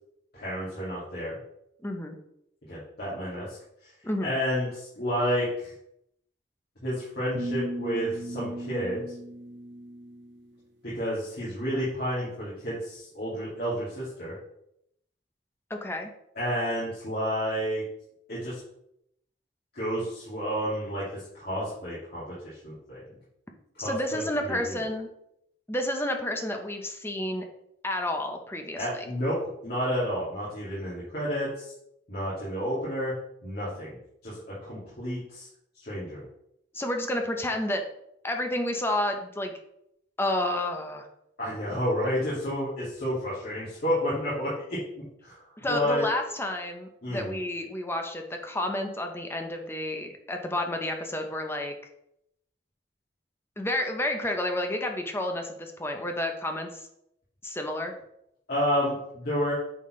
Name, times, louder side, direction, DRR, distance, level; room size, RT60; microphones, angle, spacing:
voice 1, 0.3-1.4 2.7-3.6 4.2-5.7 6.8-9.0 10.8-14.4 16.4-17.8 18.3-18.6 19.7-23.0 23.7-24.8 28.8-29.4 29.6-31.7 32.1-33.1 33.4-33.9 34.2-35.5 35.8-36.2 41.4-44.8 45.2-45.4 45.7-46.0 47.0-47.3 58.5-59.5, equal, 55° left, -10 dB, 2.4 m, -30 dB
voice 2, 1.8-2.2 4.0-4.3 15.7-16.1 23.8-25.1 25.7-27.4 27.8-29.0 36.7-37.8 38.2-39.5 40.2-41.1 45.6-51.7 53.6-56.9 57.4-57.9, left 1 dB, 15° left, 4 dB, 0.7 m, -30 dB
sound 1, 7.3-10.5, right 1 dB, 75° right, 0.8 m, -37 dB
8.9 x 4.2 x 3.2 m, 0.76 s
head